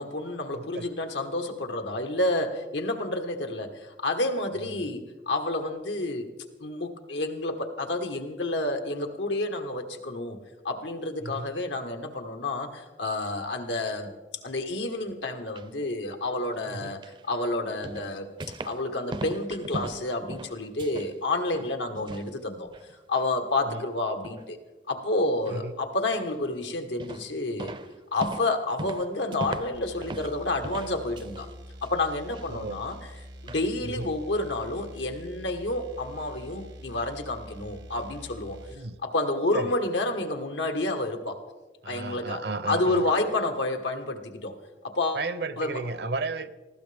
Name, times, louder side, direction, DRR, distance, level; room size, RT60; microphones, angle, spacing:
voice 1, 0.0-6.3 6.6-10.4 10.6-14.1 14.4-17.0 17.3-18.3 18.6-22.7 23.1-24.6 24.9-27.7 28.1-31.5 31.8-33.0 33.4-38.6 39.0-41.4 41.8-44.5 44.8-45.2 45.6-45.8, left 2 dB, 90° left, 4 dB, 1.5 m, -29 dB
voice 2, 0.5-0.9 4.6-4.9 11.2-11.5 16.7-17.0 23.6-23.8 25.5-25.8 32.5-32.8 33.8-34.1 38.7-39.0 39.5-39.7 41.8-43.0 45.1-46.5, right 3 dB, 65° right, 13 dB, 0.7 m, -34 dB
sound 1, 15.2-15.7 17.0-17.2 17.8-18.8 19.1-21.2 21.5-22.3 22.6-23.3 23.7-23.8 24.2-24.5 25.5-25.6 26.1-26.5 27.0-27.3 27.6-30.4 30.6-31.5 31.8-32.5 32.9-33.0 33.5-33.7, right 2 dB, 25° right, 0.5 m, -39 dB
sound 2, 29.7-38.8, equal, 90° right, 1.5 m, -45 dB
19.5 x 15.0 x 3.5 m, 1.2 s
head